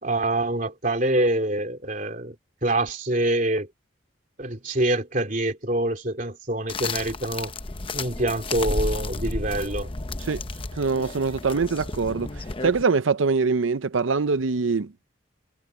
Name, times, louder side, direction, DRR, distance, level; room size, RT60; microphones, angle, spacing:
voice 1, 0.0-2.4 2.6-3.7 4.4-7.5 7.9-9.9, right 1 dB, 40° right, 3.3 m, -25 dB
sound 1, 6.7-12.8, left 2 dB, 25° left, 0.8 m, -32 dB
voice 2, 10.8-12.3 12.6-14.9, right 4 dB, 90° right, 0.7 m, -23 dB
head